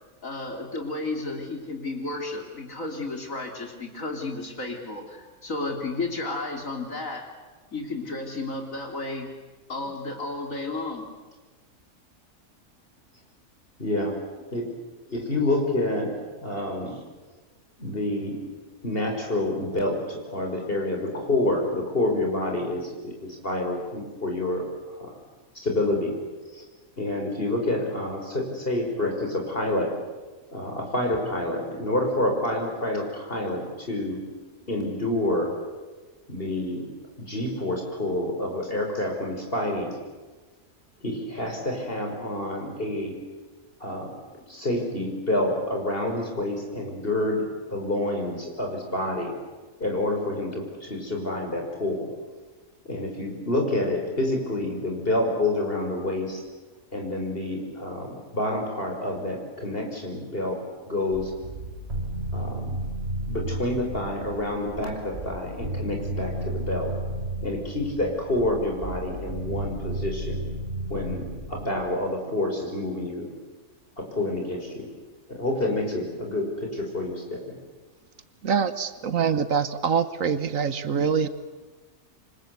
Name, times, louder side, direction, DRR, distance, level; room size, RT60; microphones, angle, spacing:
voice 1, 0.2-7.3 7.7-9.3 9.7-11.1, left 2 dB, 65° left, 3 dB, 3.9 m, -32 dB
voice 2, 13.8-14.2 14.5-14.6 15.1-17.0 17.8-18.4 18.8-24.7 24.9-25.2 25.5-26.2 26.5-26.6 27.0-29.9 30.5-34.2 34.7-35.5 36.3-36.9 37.2-39.9 41.0-43.2 43.8-44.1 44.5-49.3 49.8-52.1 52.9-56.4 56.9-60.6 60.9-61.3 62.3-62.7 63.3-66.9 67.4-70.4 70.9-73.3 74.0-74.9 75.3-77.5, left 1 dB, 40° left, 2 dB, 5.9 m, -28 dB
sound 1, 61.1-71.7, right 1 dB, 45° right, 8.2 m, -33 dB
voice 3, 78.4-81.3, right 6 dB, 65° right, 12 dB, 1.5 m, -24 dB
28.0 x 25.0 x 8.2 m, 1.3 s
omnidirectional pair, 1.5 m